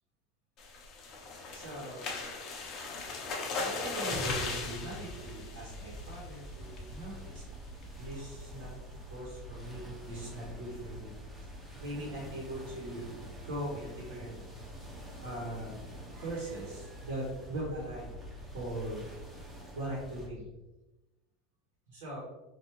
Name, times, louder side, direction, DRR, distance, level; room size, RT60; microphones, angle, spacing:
sound 1, 0.6-6.3 6.8-7.0 7.4-7.5 7.8-8.1, left 3 dB, 35° left, 0.6 m, -38 dB
voice 1, 1.5-2.2 3.6-7.4 8.0-11.1 11.8-14.4 15.2-18.2 18.5-19.1 19.7-20.5 21.9-22.2, right 1 dB, 85° right, -6 dB, 1.2 m, -40 dB
sound 2, 4.2-20.3, equal, 5° right, 0.6 m, -46 dB
3.3 x 2.6 x 2.9 m, 1.0 s
supercardioid pair, 150°, 0 cm